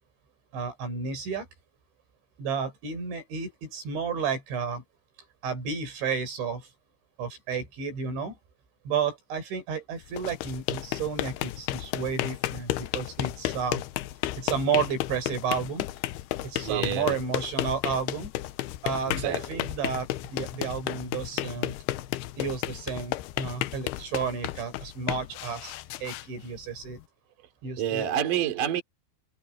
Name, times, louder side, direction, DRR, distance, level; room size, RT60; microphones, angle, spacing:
voice 1, 0.5-1.5 2.4-4.8 5.4-6.7 7.2-8.4 8.8-13.8 14.4-15.9 16.4-18.3 18.8-21.8 22.4-25.7 26.0-27.0 27.6-28.0, right 6 dB, 85° right, 8.4 m, -32 dB
sound 1, 10.0-27.0, left 15 dB, 80° left, 2.6 m, -33 dB
voice 2, 16.6-17.2 19.2-19.6 27.8-28.8, right 10 dB, 50° right, 4.3 m, -28 dB
omnidirectional pair, 5.1 m